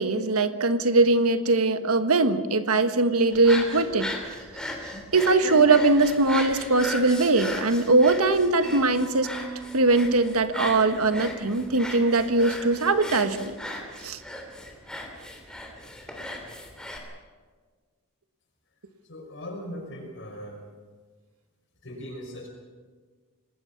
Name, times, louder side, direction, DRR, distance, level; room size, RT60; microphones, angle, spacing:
voice 1, 0.0-4.1 4.8-9.3 9.7-13.6 14.0-14.2, right 3 dB, 85° right, 9 dB, 1.4 m, -21 dB
sound 1, 3.3-17.0, left 1 dB, 5° left, 3.1 m, -37 dB
Mallet percussion, 8.6-12.6, right 4 dB, 35° right, 7.1 m, -42 dB
voice 2, 19.0-20.7 21.8-22.5, equal, 55° left, 1 dB, 5.9 m, -39 dB
27.0 x 19.5 x 5.9 m, 1.5 s
head